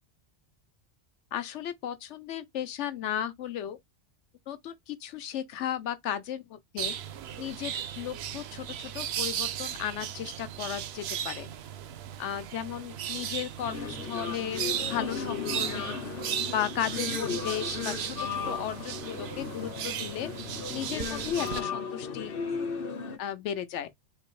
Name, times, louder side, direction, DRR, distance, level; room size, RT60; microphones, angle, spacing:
voice 1, 1.3-3.8 4.5-6.9 7.4-11.5 12.2-14.6 14.9-16.0 16.5-20.3 20.7-22.3 23.2-23.9, left 10 dB, 85° left, 1.0 m, -35 dB
sound 1, 6.8-21.6, right 9 dB, 70° right, 0.8 m, -36 dB
sound 2, 13.6-23.2, left 5 dB, 55° left, 0.9 m, -36 dB
3.4 x 2.9 x 4.6 m
omnidirectional pair, 1.2 m